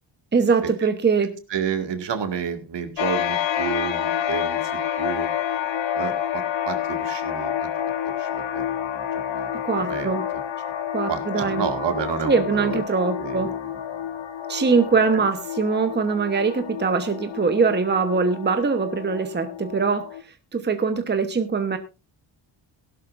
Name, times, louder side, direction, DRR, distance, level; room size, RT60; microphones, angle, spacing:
voice 1, 0.3-1.4 9.6-10.2 10.9-11.6 12.2-13.5 14.5-20.1 20.5-21.8, right 5 dB, 25° right, 8 dB, 1.1 m, -22 dB
voice 2, 1.5-5.3 5.9-7.7 8.0-10.1 11.1-12.8 13.2-13.7 15.1-15.2, right 6 dB, 65° right, 7 dB, 2.2 m, -30 dB
sound 1, 3.0-20.2, left 9 dB, 80° left, 1.4 m, -29 dB
17.5 x 11.5 x 2.6 m, 0.28 s
cardioid pair, 115°, 45 cm